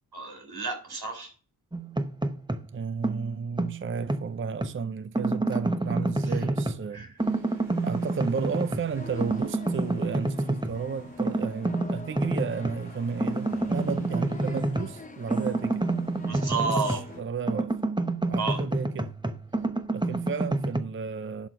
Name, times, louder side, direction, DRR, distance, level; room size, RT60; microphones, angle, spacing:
voice 1, 0.1-1.3 6.2-6.5 6.9-7.1 16.3-17.0 18.4-18.6, right 4 dB, 85° right, 4.0 m, -31 dB
sound 1, 1.7-2.7 3.0-4.8 5.1-6.9 7.2-8.9 9.2-10.8 11.2-12.8 13.2-17.2 17.5-20.8, right 2 dB, 10° right, 0.8 m, -28 dB
voice 2, 2.7-7.6 7.8-15.8 16.6-17.8 18.3-19.1 19.9-21.5, right 6 dB, 35° right, 0.5 m, -33 dB
sound 2, 7.2-17.2, right 1 dB, 60° right, 5.6 m, -56 dB
sound 3, 8.9-17.2, left 3 dB, 20° left, 0.7 m, -44 dB
11.5 x 4.6 x 5.2 m
wide cardioid pair, 105°, 37 cm